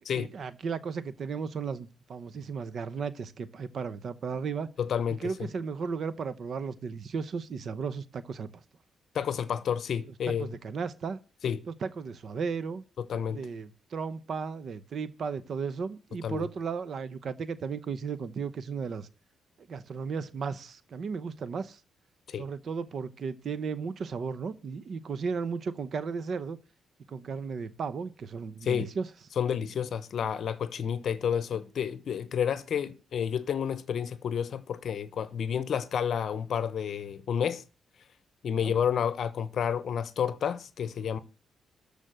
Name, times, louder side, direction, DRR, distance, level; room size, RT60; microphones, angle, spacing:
voice 1, 0.1-4.7 5.2-8.5 10.3-11.2 11.7-12.8 13.3-19.1 19.7-21.8 22.4-26.6 27.1-29.1 38.6-38.7, right 5 dB, 50° right, 0.8 m, -35 dB
voice 2, 4.8-5.3 9.1-10.5 11.4-11.6 13.0-13.4 16.2-16.5 22.3-22.5 28.6-28.9 29.4-37.6 38.4-41.2, left 8 dB, 55° left, 0.9 m, -30 dB
13.5 x 5.1 x 7.6 m
cardioid pair, 140°, 0 cm